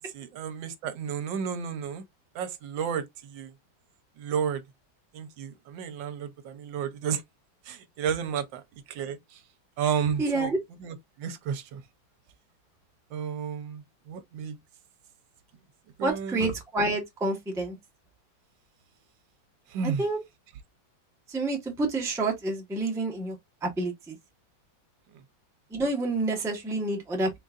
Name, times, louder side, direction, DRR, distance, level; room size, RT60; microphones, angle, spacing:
voice 1, 0.0-2.0 2.3-3.5 4.2-4.6 5.1-7.2 7.6-8.6 8.9-9.4 9.8-10.5 10.8-11.8 13.1-14.6 16.0-16.5 19.7-20.1 25.1-25.2, right 7 dB, 75° right, 1.3 m, -32 dB
voice 2, 10.2-10.5 16.0-17.8 20.0-20.2 21.3-23.4 23.6-24.2 25.7-27.3, right 2 dB, ahead, 0.7 m, -28 dB
3.9 x 3.7 x 2.4 m
omnidirectional pair, 2.1 m